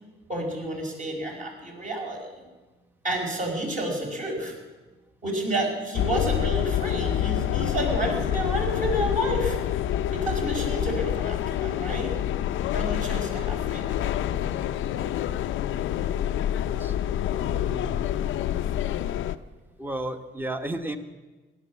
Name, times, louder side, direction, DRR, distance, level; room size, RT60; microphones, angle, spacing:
voice 1, 0.3-2.3 3.0-4.6 5.2-9.6 10.1-12.1 12.7-14.0 18.5-18.9, right 1 dB, 40° right, 0 dB, 5.5 m, -30 dB
sound 1, 5.9-19.4, left 11 dB, 80° left, 0.6 m, -27 dB
voice 2, 16.7-18.1 19.8-21.0, right 1 dB, 10° right, 7 dB, 1.3 m, -34 dB
17.0 x 11.5 x 7.2 m, 1.2 s
cardioid pair, 90°, 20 cm